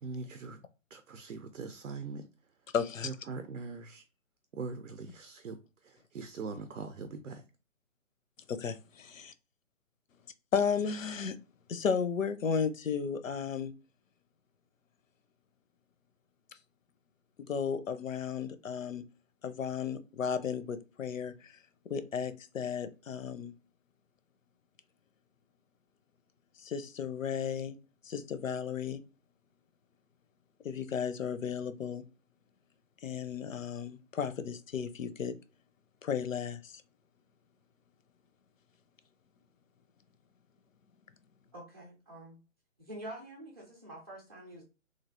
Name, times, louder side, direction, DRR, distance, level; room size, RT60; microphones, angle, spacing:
voice 1, 0.0-0.6 0.9-2.3 3.0-4.0 4.5-7.4, right 4 dB, 80° right, 0.5 m, -42 dB
voice 2, 2.7-3.1 8.5-9.3 10.5-11.4 11.7-13.7 17.4-19.0 19.4-21.6 21.9-23.5 26.6-27.8 28.0-29.0 30.6-32.0 33.0-35.4 36.0-36.8, left 6 dB, 75° left, 0.5 m, -34 dB
voice 3, 41.5-42.4 42.8-44.6, right 1 dB, 20° right, 0.5 m, -46 dB
3.2 x 2.4 x 2.4 m
figure-of-eight pair, 140°, 39 cm